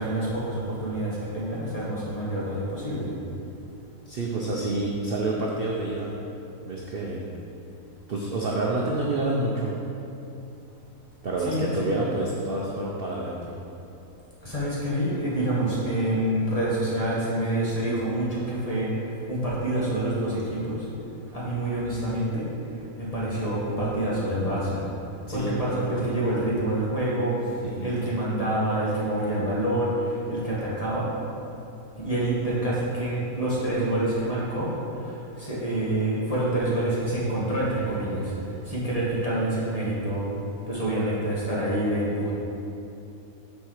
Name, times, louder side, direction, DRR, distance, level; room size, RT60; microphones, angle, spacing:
voice 1, 0.0-3.1 11.4-11.9 14.4-18.9 19.3-20.8 21.3-22.5 23.0-24.8 25.3-27.4 27.8-31.1 32.0-34.7 35.0-35.1 35.4-38.3 38.7-40.3 40.7-42.3, right 1 dB, 20° left, -7 dB, 1.7 m, -27 dB
voice 2, 4.1-6.1 6.6-7.2 8.1-9.7 11.2-13.5 25.3-25.7 27.6-27.9, right 2 dB, 55° right, -2 dB, 0.6 m, -28 dB
7.4 x 4.6 x 6.4 m, 2.9 s
omnidirectional pair, 1.8 m